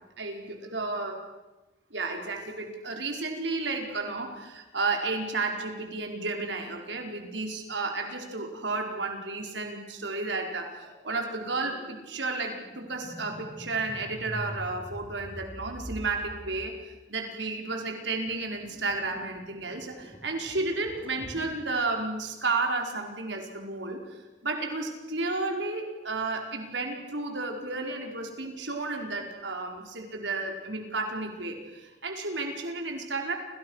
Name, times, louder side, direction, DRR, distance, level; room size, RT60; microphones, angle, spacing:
voice 1, 0.2-1.2 1.9-24.0 24.4-33.4, right 3 dB, 85° right, 3 dB, 5.1 m, -32 dB
sound 1, 10.7-16.7 17.8-21.5, equal, 10° right, 6.7 m, -45 dB
29.5 x 27.0 x 6.7 m, 1.1 s
head